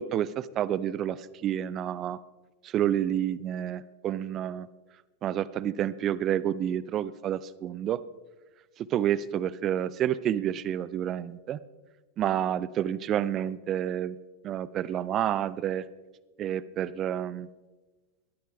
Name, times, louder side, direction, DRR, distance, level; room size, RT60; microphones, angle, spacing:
voice 1, 0.0-2.2 2.6-4.7 5.2-8.0 8.8-11.6 12.2-14.2 14.4-15.8 16.4-17.5, right 10 dB, 30° right, 19 dB, 0.5 m, -29 dB
18.0 x 13.0 x 3.4 m, 1.2 s
figure-of-eight pair, 90°, 0 cm